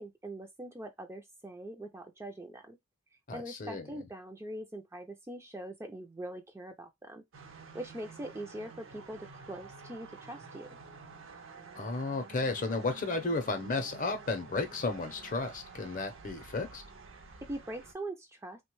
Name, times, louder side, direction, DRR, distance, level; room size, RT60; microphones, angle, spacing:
voice 1, 0.0-2.8 3.3-7.2 7.7-10.7 17.4-18.6, right 1 dB, 15° right, 0.3 m, -42 dB
voice 2, 3.3-3.9 11.8-16.8, left 3 dB, 40° left, 0.6 m, -33 dB
sound 1, 7.3-17.9, right 4 dB, 65° right, 0.6 m, -50 dB
3.2 x 2.2 x 3.0 m
head